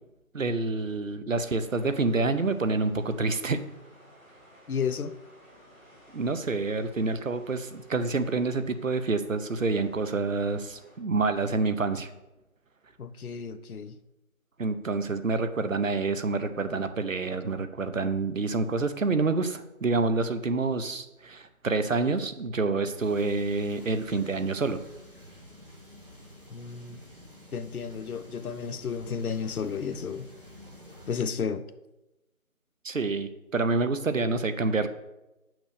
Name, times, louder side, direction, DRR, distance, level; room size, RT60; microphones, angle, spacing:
voice 1, 0.3-3.6 6.1-12.1 14.6-24.8 32.8-34.9, right 3 dB, 60° right, 0.7 m, -27 dB
sound 1, 1.6-11.0, equal, 5° right, 2.5 m, -56 dB
voice 2, 4.7-5.1 13.0-13.9 26.5-27.0 27.5-30.3 31.1-31.6, left 6 dB, 75° left, 0.7 m, -32 dB
sound 2, 22.9-31.2, left 1 dB, 40° right, 1.7 m, -50 dB
6.1 x 5.2 x 6.7 m
figure-of-eight pair, 175°, 43 cm